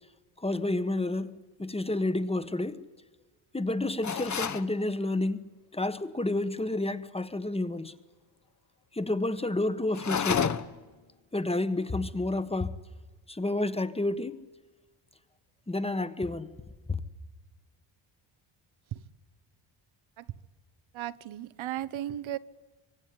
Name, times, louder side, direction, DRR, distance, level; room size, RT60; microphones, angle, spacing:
voice 1, 0.4-2.8 3.5-7.9 8.9-10.5 11.3-12.8 13.3-14.4 15.7-16.5 16.9-17.0, left 2 dB, 10° left, 1.4 m, -30 dB
sound 1, 4.0-4.7 9.9-10.9, left 7 dB, 35° left, 1.3 m, -29 dB
voice 2, 20.9-22.4, right 12 dB, 70° right, 1.3 m, -35 dB
25.0 x 24.5 x 9.7 m
cardioid pair, 105°, 49 cm